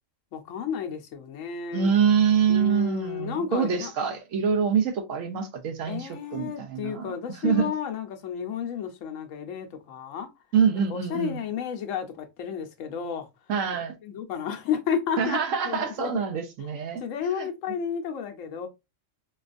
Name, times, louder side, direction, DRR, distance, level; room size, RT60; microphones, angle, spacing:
voice 1, 0.3-1.9 2.5-3.9 5.9-10.3 10.9-13.3 14.0-15.4 15.6-16.1 17.0-18.7, left 7 dB, 85° left, 1.1 m, -32 dB
voice 2, 1.7-7.1 7.4-7.7 10.5-11.4 13.5-14.0 15.2-17.0 17.4-17.5, right 7 dB, 85° right, 1.1 m, -25 dB
4.3 x 2.3 x 2.4 m
omnidirectional pair, 1.3 m